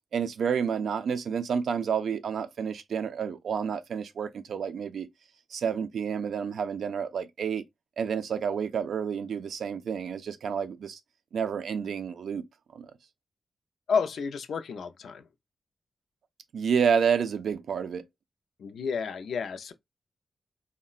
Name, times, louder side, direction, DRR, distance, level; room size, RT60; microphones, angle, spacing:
voice 1, 0.1-5.1 5.5-7.6 8.0-11.0 11.3-12.4 12.7-12.9 16.5-18.0, right 7 dB, 75° right, 0.4 m, -29 dB
voice 2, 13.9-15.3 18.6-19.7, left 5 dB, 75° left, 0.4 m, -31 dB
3.7 x 2.1 x 2.3 m
wide cardioid pair, 170°, 0 cm